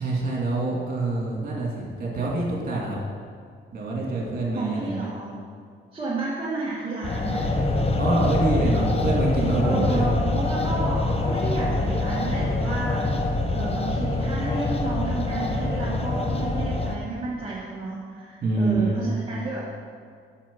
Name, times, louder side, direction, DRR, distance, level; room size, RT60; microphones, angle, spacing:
voice 1, 0.0-3.0 3.7-5.1 8.0-10.0 18.4-19.1, right 2 dB, 50° right, -3 dB, 2.5 m, -26 dB
voice 2, 4.5-5.3 5.9-7.5 9.6-13.1 13.5-19.6, right 2 dB, 25° right, -7 dB, 1.5 m, -31 dB
sound 1, 7.0-17.0, left 2 dB, 30° left, 0.8 m, -25 dB
7.4 x 6.9 x 5.5 m, 2.2 s
cardioid pair, 115°, 20 cm